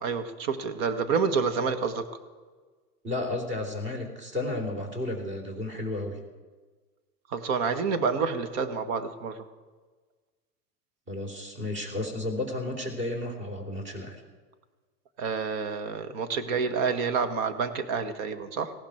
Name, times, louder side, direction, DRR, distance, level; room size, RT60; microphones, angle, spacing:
voice 1, 0.0-2.1 7.3-9.5 15.2-18.7, right 5 dB, 55° right, 9 dB, 1.8 m, -28 dB
voice 2, 3.0-6.2 11.1-14.2, left 2 dB, 25° right, 4 dB, 3.8 m, -32 dB
18.5 x 15.5 x 4.5 m, 1.4 s
hypercardioid pair, 110°, 47 cm